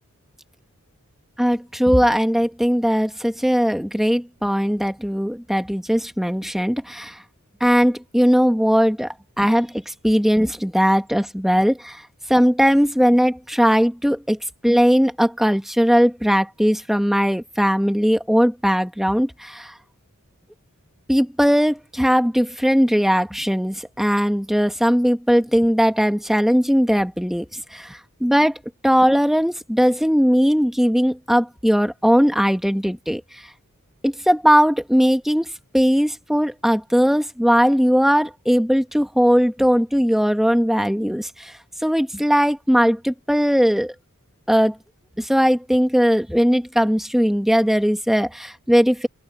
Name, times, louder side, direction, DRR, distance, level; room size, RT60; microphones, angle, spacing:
voice 1, 1.4-7.2 7.6-12.0 12.3-14.4 14.6-19.7 21.1-33.4 34.0-43.9 44.5-44.8 45.2-49.1, equal, ahead, 1.3 m, -19 dB
open air
head